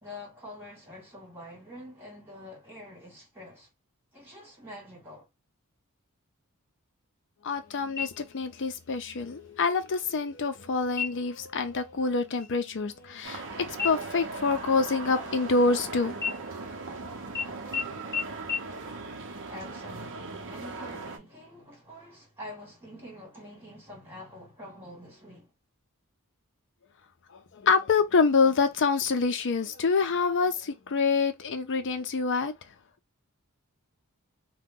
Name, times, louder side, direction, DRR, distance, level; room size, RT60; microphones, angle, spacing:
voice 1, 0.0-3.7 4.1-5.3 19.5-25.5, left 1 dB, 10° right, 1.9 m, -46 dB
voice 2, 7.4-16.2 27.5-32.5, left 4 dB, 55° left, 0.5 m, -26 dB
sound 1, 8.0-8.6 9.0-9.1 9.7-10.2 10.9-11.4 11.8-12.1 12.4-13.5 13.8-15.8 16.2-17.0 17.3-17.4 17.7-17.8 18.1-18.2 18.5-18.6, left 6 dB, 10° left, 0.8 m, -35 dB
sound 2, 13.2-21.2, right 3 dB, 55° right, 0.7 m, -39 dB
2.9 x 2.2 x 3.6 m
head